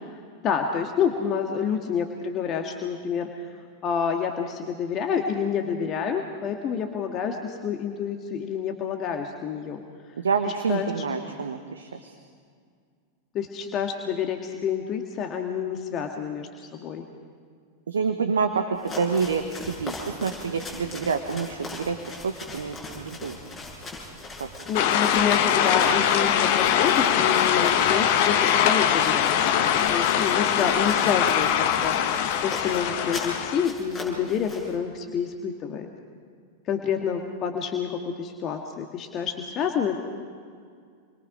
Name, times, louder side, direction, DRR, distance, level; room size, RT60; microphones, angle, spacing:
voice 1, 0.4-3.3 3.8-9.8 10.4-11.0 13.3-17.0 24.7-29.5 29.9-35.9 36.7-40.0, left 7 dB, 35° left, 3 dB, 1.8 m, -28 dB
voice 2, 10.2-12.1 17.9-23.4, right 5 dB, 70° right, 6 dB, 1.3 m, -28 dB
sound 1, 18.7-34.7, left 2 dB, 15° left, 7.7 m, -40 dB
sound 2, 24.7-33.7, left 9 dB, 50° left, 1.2 m, -22 dB
28.5 x 22.5 x 5.0 m, 2.1 s
figure-of-eight pair, 90°, 0 cm